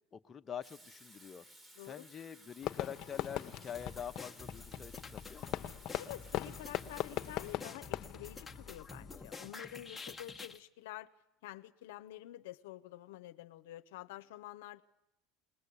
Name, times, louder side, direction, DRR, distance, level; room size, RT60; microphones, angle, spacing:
voice 1, 0.1-1.4 1.8-5.5, left 8 dB, 30° left, 1.0 m, -45 dB
Water tap faucet / Sink (filling or washing), 0.6-7.6, right 1 dB, 15° right, 2.1 m, -59 dB
Fireworks, 2.6-9.2, left 13 dB, 55° left, 1.0 m, -41 dB
sound 1, 3.7-10.6, left 4 dB, 15° left, 1.3 m, -49 dB
voice 2, 6.0-11.1 11.4-14.8, left 14 dB, 85° left, 0.7 m, -48 dB
22.0 x 18.5 x 8.5 m
supercardioid pair, 100°, 0 cm